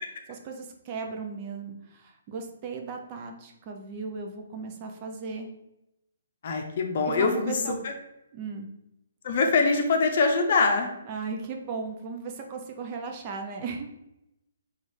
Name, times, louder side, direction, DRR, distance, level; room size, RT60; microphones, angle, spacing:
voice 1, 0.4-5.5 7.1-7.8 8.3-8.7 11.1-13.9, right 4 dB, 30° right, 3 dB, 0.5 m, -36 dB
voice 2, 6.4-7.9 9.2-10.9, left 4 dB, 55° left, 3 dB, 0.6 m, -24 dB
3.1 x 2.4 x 4.3 m, 0.87 s
hypercardioid pair, 145°, 0 cm